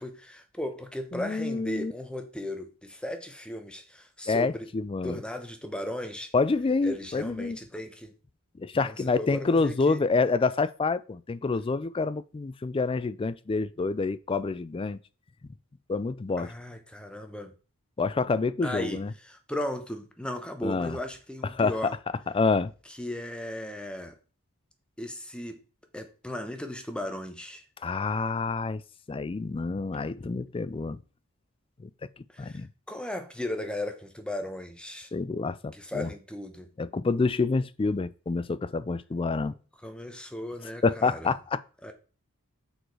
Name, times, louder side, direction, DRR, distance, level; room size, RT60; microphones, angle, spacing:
voice 1, 0.0-4.7 5.0-6.3 6.8-8.1 8.8-10.0 16.4-17.5 18.6-21.9 22.9-24.1 25.0-25.6 25.9-27.6 32.3-35.1 35.7-36.7 39.8-41.3 41.8-41.9, left 1 dB, 5° left, 0.9 m, -36 dB
voice 2, 1.1-1.9 4.3-5.2 6.3-7.6 8.6-15.0 15.9-16.5 18.0-19.1 20.6-21.0 21.5-21.7 22.3-22.7 27.8-28.8 29.1-31.0 31.8-31.9 32.4-32.7 35.1-36.1 36.8-39.5 40.8-41.6, left 4 dB, 25° left, 0.3 m, -27 dB
6.5 x 4.7 x 4.8 m
head